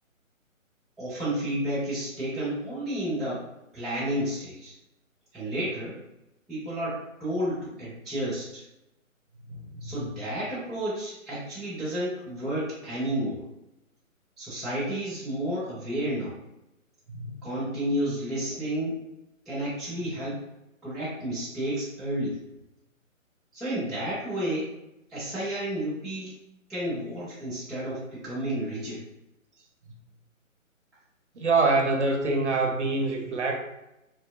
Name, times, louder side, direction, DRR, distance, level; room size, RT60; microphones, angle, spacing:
voice 1, 1.0-3.4 3.7-4.7 5.3-6.0 6.5-8.6 9.8-13.4 14.4-16.4 17.4-19.0 19.5-20.4 20.8-22.4 23.5-24.7 25.1-26.3 26.7-29.0, right 1 dB, ahead, -12 dB, 0.3 m, -31 dB
voice 2, 9.5-9.9 17.1-17.5 31.4-33.6, right 3 dB, 55° right, 2 dB, 0.6 m, -25 dB
2.5 x 2.4 x 2.3 m, 0.90 s
figure-of-eight pair, 155°, 41 cm